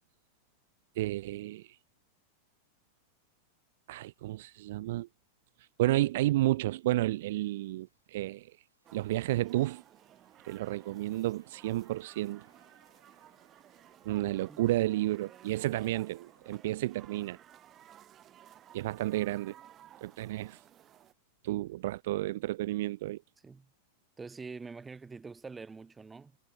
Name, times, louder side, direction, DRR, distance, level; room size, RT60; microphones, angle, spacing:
voice 1, 1.0-1.8 3.9-5.1 5.8-8.5 8.9-9.8 10.4-12.4 14.1-17.4 18.7-19.5 20.0-20.6 21.4-23.2, right 16 dB, 55° right, 0.3 m, -31 dB
sound 1, 5.9-18.5, right 2 dB, 85° right, 5.9 m, -73 dB
sound 2, 8.8-21.1, right 11 dB, 30° right, 5.8 m, -56 dB
voice 2, 24.2-26.4, right 4 dB, 15° right, 2.4 m, -45 dB
figure-of-eight pair, 90°, 0 cm